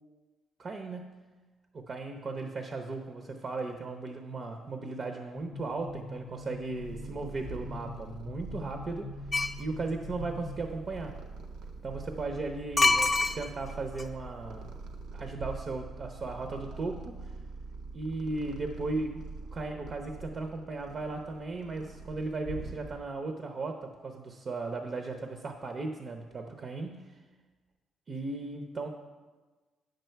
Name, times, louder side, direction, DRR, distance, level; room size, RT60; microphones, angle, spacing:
voice 1, 0.6-1.1 1.7-9.1 9.6-11.1 11.8-14.7 15.1-17.3 17.9-27.2 28.1-28.9, right 3 dB, 45° right, 5 dB, 0.7 m, -36 dB
sound 1, 5.3-10.6, left 3 dB, 65° left, 0.5 m, -44 dB
Purr, 6.4-23.2, right 3 dB, 85° right, 0.8 m, -44 dB
sound 2, 9.3-9.6 12.8-13.7 14.0-14.1, left 3 dB, 20° left, 0.6 m, -24 dB
8.8 x 6.7 x 4.5 m, 1.3 s
cardioid pair, 90°, 0 cm